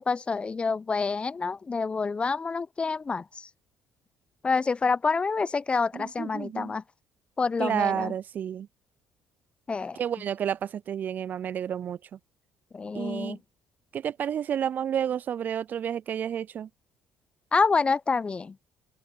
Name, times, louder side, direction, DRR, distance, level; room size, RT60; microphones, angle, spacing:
voice 1, 0.0-3.2 4.4-6.8 7.4-8.1 9.7-10.0 12.7-13.4 17.5-18.5, left 4 dB, 30° left, 0.8 m, -27 dB
voice 2, 5.9-6.8 7.6-8.7 9.9-12.0 12.9-13.4 13.9-16.7, right 9 dB, 50° right, 0.4 m, -30 dB
open air
hypercardioid pair, 55°, 4 cm